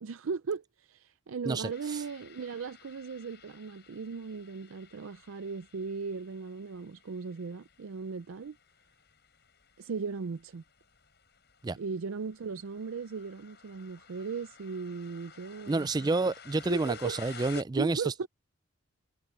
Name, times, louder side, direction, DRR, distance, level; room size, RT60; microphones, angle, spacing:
voice 1, 0.0-8.6 9.8-10.6 11.8-16.2 16.7-17.4 17.7-18.3, right 5 dB, 80° right, 0.5 m, -37 dB
voice 2, 1.5-2.0 11.6-11.8 15.7-18.3, right 3 dB, 20° right, 0.3 m, -29 dB
sound 1, 1.7-17.6, left 7 dB, 55° left, 7.5 m, -54 dB
head